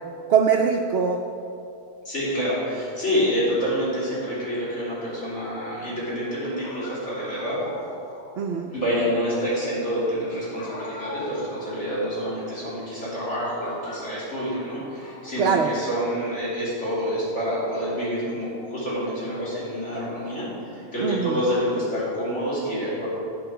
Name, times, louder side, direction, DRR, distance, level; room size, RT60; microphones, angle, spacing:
voice 1, 0.3-1.2 8.4-8.7 15.4-15.7 21.0-21.5, right 6 dB, 65° right, 2 dB, 0.8 m, -22 dB
voice 2, 2.1-7.6 8.7-23.1, equal, 70° left, -10 dB, 3.5 m, -27 dB
sound 1, 6.6-8.4 10.6-11.7 12.1-12.2 13.0-13.3 13.6-14.6 15.0-16.2, left 2 dB, 50° left, 1.5 m, -41 dB
8.6 x 8.2 x 5.9 m, 2.6 s
omnidirectional pair, 1.3 m